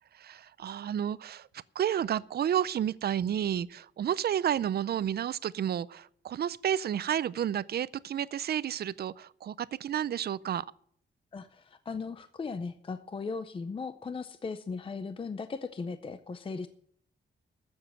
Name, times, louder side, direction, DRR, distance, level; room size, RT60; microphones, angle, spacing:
voice 1, 0.1-10.6, right 10 dB, 55° right, 0.4 m, -31 dB
voice 2, 11.3-16.7, left 4 dB, 25° left, 0.5 m, -37 dB
14.0 x 7.2 x 7.4 m
wide cardioid pair, 175°, 20 cm